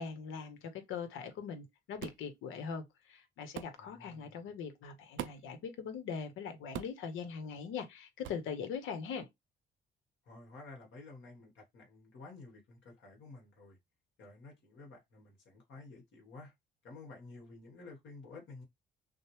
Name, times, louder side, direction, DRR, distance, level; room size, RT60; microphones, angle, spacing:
voice 1, 0.0-9.3, left 6 dB, 85° left, 1.0 m, -41 dB
sound 1, 2.0-2.3 3.6-3.8 5.2-5.5 6.7-7.1 8.2-8.5, right 11 dB, 75° right, 0.5 m, -42 dB
voice 2, 3.8-4.4 10.2-13.8 14.2-16.5 16.8-18.6, left 3 dB, 70° left, 1.5 m, -52 dB
6.2 x 2.1 x 3.1 m
cardioid pair, 90°, 20 cm